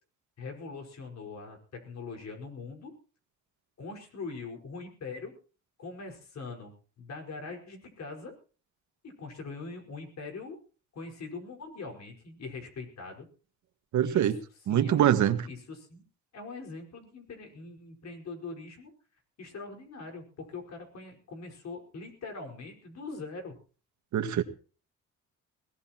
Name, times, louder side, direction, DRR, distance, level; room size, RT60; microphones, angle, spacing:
voice 1, 0.4-2.9 3.8-5.3 5.8-6.7 7.0-8.3 9.0-10.6 10.9-13.3 14.0-14.3 14.7-16.0 16.3-18.9 19.4-23.6, left 4 dB, 60° left, 2 dB, 5.1 m, -42 dB
voice 2, 13.9-14.4 14.7-15.4 24.1-24.4, right 10 dB, 70° right, 8 dB, 1.8 m, -23 dB
22.0 x 18.0 x 3.0 m, 0.39 s
cardioid pair, 90°, 30 cm